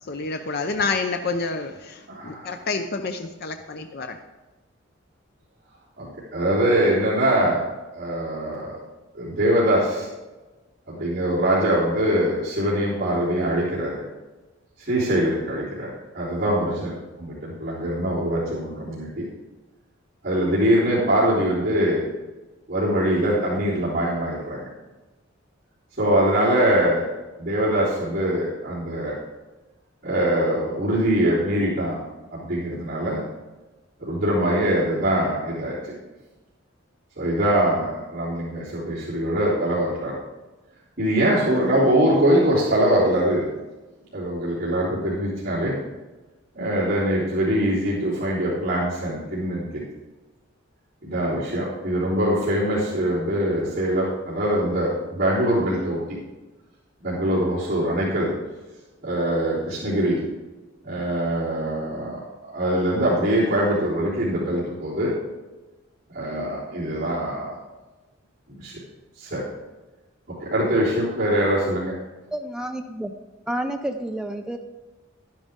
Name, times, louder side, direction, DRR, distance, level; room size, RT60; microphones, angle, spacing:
voice 1, 0.0-4.2, left 4 dB, 55° left, 6 dB, 0.6 m, -28 dB
voice 2, 2.1-2.5 6.0-6.1 6.3-7.6 7.9-8.8 9.1-10.1 10.9-14.0 14.8-19.2 20.2-22.0 22.7-24.7 26.0-27.0 27.4-29.1 30.0-32.0 32.3-33.2 34.0-35.8 37.2-40.2 41.0-43.5 44.1-45.7 46.6-49.7 51.0-56.0 57.0-58.3 59.0-60.2 60.8-62.2 62.5-65.1 66.1-67.6 68.6-68.8 69.2-69.4 70.4-71.9, right 1 dB, 50° right, -9 dB, 3.6 m, -23 dB
voice 3, 72.3-73.1 73.5-74.6, right 1 dB, 5° right, 4 dB, 0.5 m, -29 dB
12.0 x 10.5 x 3.7 m, 1.2 s
head